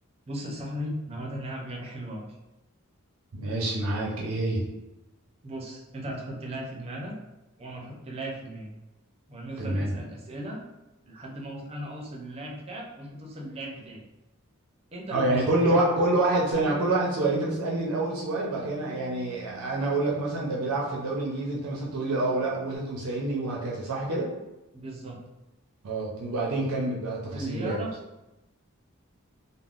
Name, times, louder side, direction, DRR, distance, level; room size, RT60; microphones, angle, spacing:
voice 1, 0.3-2.2 5.4-7.1 7.6-8.7 9.3-10.6 11.0-14.0 14.9-15.8 24.7-25.2 27.3-27.9, right 1 dB, 30° right, -1 dB, 0.5 m, -37 dB
voice 2, 3.3-4.7 9.6-10.0 15.1-24.3 25.8-27.8, right 2 dB, 85° right, -3 dB, 0.5 m, -27 dB
Bass guitar, 16.5-22.8, right 3 dB, 55° left, 0.6 m, -44 dB
3.5 x 2.0 x 2.4 m, 0.96 s
head